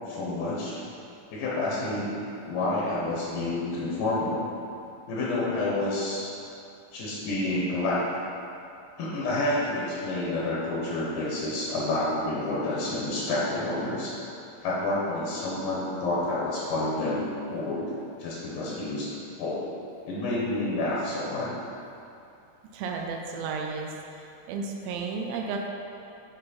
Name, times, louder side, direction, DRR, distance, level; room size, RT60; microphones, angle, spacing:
voice 1, 0.1-0.8 1.3-2.2 2.5-4.5 5.1-6.3 6.9-8.1 9.0-14.1 14.6-17.9 18.2-19.1 19.4-19.7 20.1-21.5, left 2 dB, 75° left, -5 dB, 2.4 m, -29 dB
voice 2, 22.7-23.9 24.2-25.7, right 4 dB, 90° right, 1 dB, 2.4 m, -33 dB
9.1 x 4.0 x 4.2 m, 2.7 s
omnidirectional pair, 4.0 m